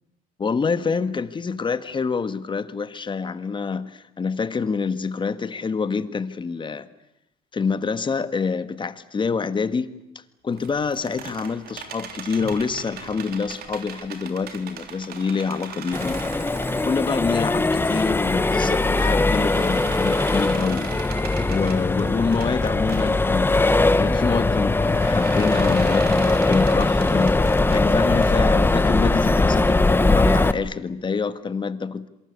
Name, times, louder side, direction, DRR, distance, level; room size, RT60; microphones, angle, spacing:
voice 1, 0.4-6.9 7.5-9.9 10.4-16.2 16.8-20.9 21.5-23.6 24.0-27.3 27.7-32.1, left 5 dB, 30° left, 1.6 m, -26 dB
sound 1, 10.5-17.8 18.2-23.6 24.7-28.4, right 7 dB, 65° right, 3.4 m, -40 dB
Accelerating revving vroom, 15.9-30.5, left 2 dB, 15° left, 1.3 m, -20 dB
27.0 x 24.0 x 8.4 m
cardioid pair, 110°, 17 cm